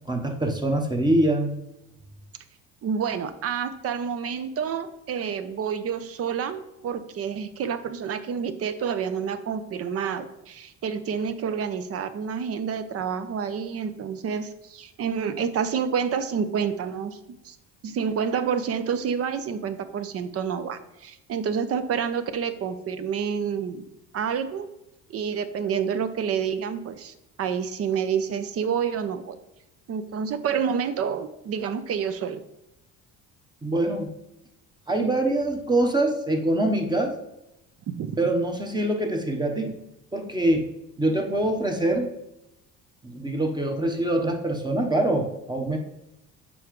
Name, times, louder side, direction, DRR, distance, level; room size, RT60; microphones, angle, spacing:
voice 1, 0.1-1.5 33.6-34.1 34.9-37.2 38.2-39.7 40.1-40.7 41.0-42.1 43.0-45.8, right 1 dB, 15° right, 3 dB, 0.9 m, -24 dB
voice 2, 2.8-17.2 17.4-17.6 17.8-23.8 24.1-24.7 25.1-29.4 29.9-32.4 37.9-38.3, right 7 dB, 45° right, 11 dB, 0.6 m, -28 dB
7.1 x 4.7 x 3.1 m, 0.88 s
cardioid pair, 105°, 33 cm